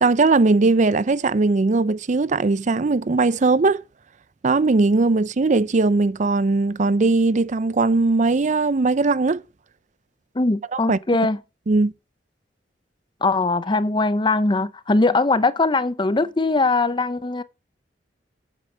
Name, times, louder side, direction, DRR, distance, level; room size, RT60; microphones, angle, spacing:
voice 1, 0.0-3.8 4.4-9.4 10.9-11.0 11.7-11.9, right 3 dB, 45° right, 0.5 m, -19 dB
voice 2, 10.3-11.4 13.2-17.4, left 3 dB, 25° left, 0.6 m, -21 dB
9.1 x 8.5 x 5.0 m
head